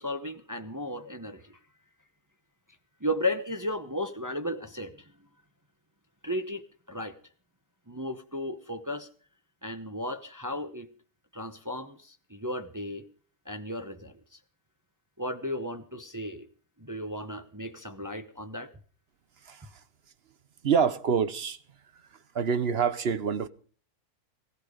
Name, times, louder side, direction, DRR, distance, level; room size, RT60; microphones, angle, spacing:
voice 1, 0.0-1.6 3.0-5.1 6.2-7.1 7.9-9.1 9.6-10.9 11.3-13.0 13.4-14.4 15.2-16.5 16.8-18.7, left 1 dB, 15° right, 0.8 m, -35 dB
voice 2, 19.4-19.8 20.6-21.6 21.9-23.5, right 6 dB, 50° right, 1.0 m, -27 dB
16.5 x 16.0 x 5.0 m
omnidirectional pair, 1.6 m